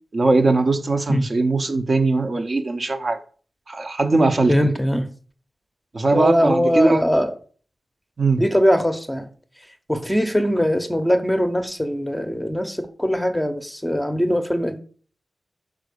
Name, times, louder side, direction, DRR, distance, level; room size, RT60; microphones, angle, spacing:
voice 1, 0.1-3.2 3.7-4.7 5.9-7.0 8.2-8.4, right 3 dB, 40° right, 0.7 m, -20 dB
voice 2, 4.5-5.1 6.1-7.3 8.4-9.3 9.9-14.8, equal, 5° left, 0.8 m, -21 dB
5.7 x 5.0 x 6.6 m
wide cardioid pair, 150°, 0 cm